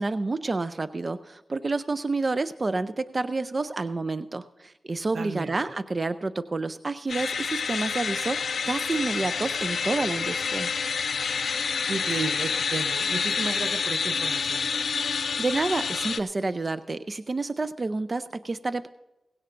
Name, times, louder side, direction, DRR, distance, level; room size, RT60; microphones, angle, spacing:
voice 1, 0.0-10.7 15.4-18.9, right 3 dB, 40° right, 12 dB, 0.5 m, -29 dB
voice 2, 5.1-5.5 11.9-14.7, right 4 dB, 75° right, 10 dB, 0.8 m, -33 dB
sound 1, 7.1-16.2, left 5 dB, 80° left, 0.6 m, -28 dB
18.5 x 16.5 x 2.6 m, 1.0 s
cardioid pair, 55°, 0 cm